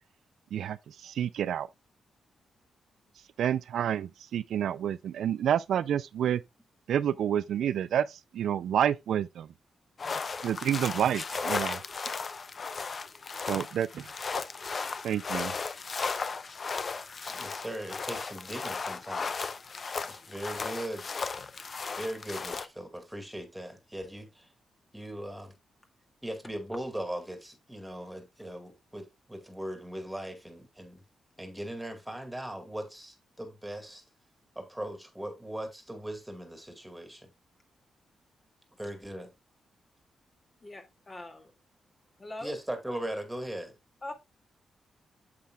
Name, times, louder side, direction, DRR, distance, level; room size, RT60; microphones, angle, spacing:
voice 1, 0.5-1.7 3.4-6.4 6.9-9.5 10.4-11.8 13.5-14.1 15.0-15.5, right 9 dB, 85° right, 0.4 m, -29 dB
sound 1, 10.0-22.7, left 4 dB, 40° left, 0.6 m, -35 dB
voice 2, 17.3-19.3 20.1-21.1 21.9-24.5 24.9-25.5 26.2-31.0 31.4-34.0 34.6-37.3 38.8-39.3 42.4-43.7, right 1 dB, 5° right, 2.2 m, -39 dB
voice 3, 40.6-41.5 42.2-42.6 44.0-44.1, left 1 dB, 25° left, 2.0 m, -42 dB
8.5 x 7.6 x 2.3 m
cardioid pair, 110°, 0 cm